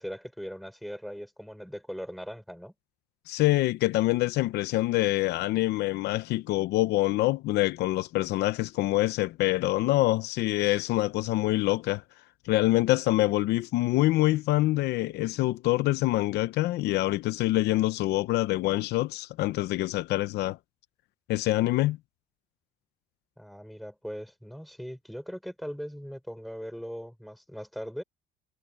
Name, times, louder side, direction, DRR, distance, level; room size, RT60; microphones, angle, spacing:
voice 1, 0.0-2.7 23.4-28.0, equal, ahead, 4.6 m, -39 dB
voice 2, 3.3-12.0 12.4-20.6 21.3-22.0, left 17 dB, 80° left, 0.7 m, -25 dB
cardioid pair, 110°, 17 cm